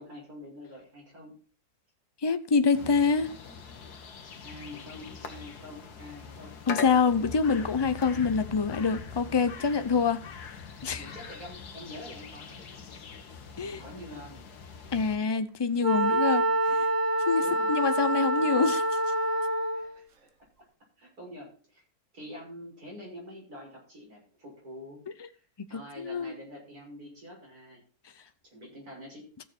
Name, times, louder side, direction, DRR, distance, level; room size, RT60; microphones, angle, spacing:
voice 1, 0.0-1.3 4.4-6.5 9.7-9.9 10.8-12.8 13.8-14.5 17.4-17.7 18.4-18.8 19.7-20.0 20.6-20.7 21.0-21.8 22.1-25.0 25.3-25.4 25.7-27.8 28.4-29.3, equal, 75° right, 6.7 m, -46 dB
voice 2, 2.2-3.3 6.7-10.2 10.8-11.1 13.6-13.8 14.9-16.8 17.3-17.4 17.7-18.8 25.7-26.3, left 5 dB, 30° left, 0.4 m, -26 dB
sound 1, 2.7-15.2, left 6 dB, 85° left, 1.8 m, -42 dB
Wind instrument woodwind instrument, 15.8-20.0, right 1 dB, 55° right, 1.6 m, -26 dB
15.0 x 6.9 x 4.4 m
omnidirectional pair, 1.6 m